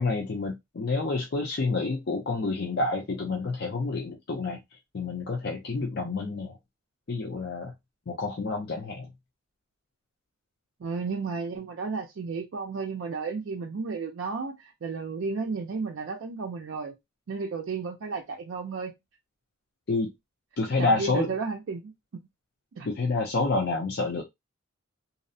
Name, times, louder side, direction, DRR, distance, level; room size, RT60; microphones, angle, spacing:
voice 1, 0.0-4.6 4.9-6.5 7.1-7.7 8.1-9.1 19.9-20.1 20.6-21.3 22.9-24.2, left 3 dB, 55° left, 0.5 m, -28 dB
voice 2, 10.8-17.0 17.3-18.9 20.8-21.9 22.8-22.9, right 4 dB, 65° right, 0.4 m, -33 dB
2.6 x 2.0 x 2.6 m
head